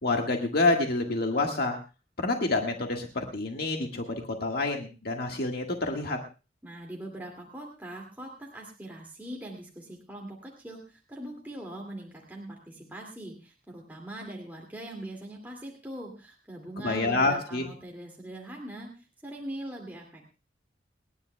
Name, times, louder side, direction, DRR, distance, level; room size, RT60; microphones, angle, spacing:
voice 1, 0.0-1.8 2.2-6.2 16.8-17.6, left 2 dB, 60° left, 2 dB, 1.7 m, -28 dB
voice 2, 6.6-20.4, right 1 dB, 10° right, -1 dB, 2.3 m, -42 dB
30.0 x 10.5 x 2.3 m, 0.32 s
head